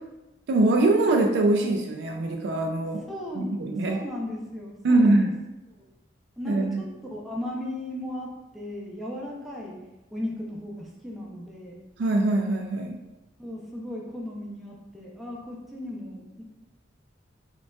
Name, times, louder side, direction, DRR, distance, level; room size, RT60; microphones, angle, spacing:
voice 1, 0.5-3.0 3.3-4.0 4.8-5.3 6.5-6.8 12.0-13.0, right 2 dB, 70° right, 3 dB, 0.3 m, -23 dB
voice 2, 3.1-3.5 3.9-5.3 6.4-6.8 7.1-9.7 10.1-11.8 13.4-16.4, left 1 dB, ahead, -4 dB, 0.5 m, -36 dB
5.1 x 2.3 x 2.3 m, 1.0 s
head